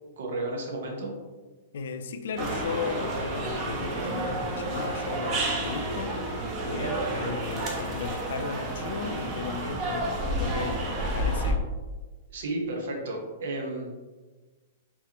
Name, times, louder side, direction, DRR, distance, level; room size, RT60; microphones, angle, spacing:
voice 1, 0.1-1.1 12.3-14.0, right 2 dB, 70° right, 1 dB, 1.1 m, -33 dB
voice 2, 1.7-11.6, left 5 dB, 75° left, 9 dB, 0.4 m, -36 dB
sound 1, 2.4-11.5, right 1 dB, 35° right, 0.9 m, -30 dB
4.6 x 2.9 x 2.9 m, 1.3 s
hypercardioid pair, 140°, 0 cm